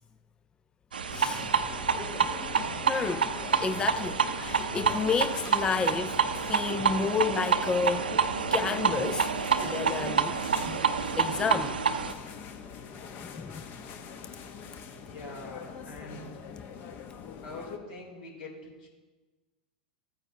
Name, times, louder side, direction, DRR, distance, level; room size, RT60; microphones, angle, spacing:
sound 1, 0.9-12.1, right 6 dB, 85° right, 0.6 m, -28 dB
sound 2, 1.1-17.8, left 6 dB, 40° left, 1.0 m, -44 dB
voice 1, 1.1-1.5 2.7-3.3 3.6-8.1 8.5-9.3 9.6-10.4 10.7-10.8 11.2-11.8 13.2-13.6, left 5 dB, 15° left, 0.3 m, -31 dB
voice 2, 15.0-16.3 17.4-18.9, left 2 dB, 70° left, 3.1 m, -43 dB
15.0 x 9.0 x 2.8 m
hypercardioid pair, 100°, 5 cm